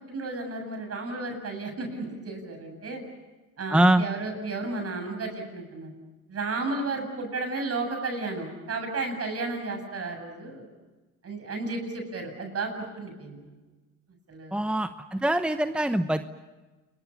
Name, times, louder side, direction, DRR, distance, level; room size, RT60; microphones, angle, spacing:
voice 1, 0.0-3.0 3.6-5.9 6.3-10.7 11.2-13.5 14.3-14.6, right 3 dB, 50° right, 5 dB, 7.9 m, -33 dB
voice 2, 3.7-4.0 14.5-16.4, right 1 dB, 5° right, 9 dB, 0.9 m, -24 dB
29.5 x 22.0 x 7.2 m, 1.2 s
cardioid pair, 90°, 30 cm